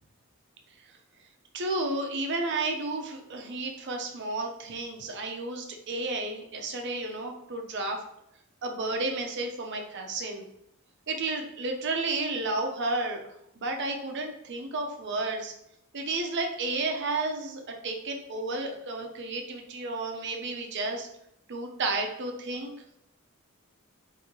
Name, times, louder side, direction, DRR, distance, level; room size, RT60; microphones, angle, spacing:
voice 1, 1.5-8.0 8.6-10.5 11.1-13.2 13.6-15.5 15.9-21.1 21.5-22.7, right 2 dB, 55° right, 3 dB, 0.6 m, -32 dB
3.7 x 2.7 x 3.0 m, 0.76 s
head